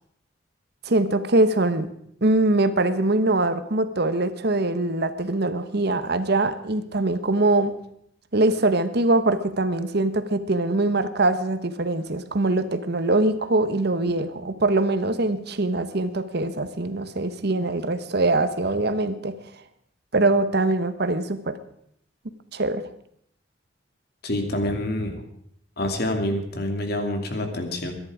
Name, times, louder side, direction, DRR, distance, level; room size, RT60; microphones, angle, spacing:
voice 1, 0.8-1.9 2.2-7.7 8.3-19.3 20.1-21.6 22.5-22.8, right 2 dB, 60° right, 11 dB, 1.2 m, -23 dB
voice 2, 24.2-25.2 25.8-27.9, left 1 dB, 60° left, 4 dB, 2.6 m, -27 dB
22.5 x 10.5 x 5.0 m, 0.69 s
head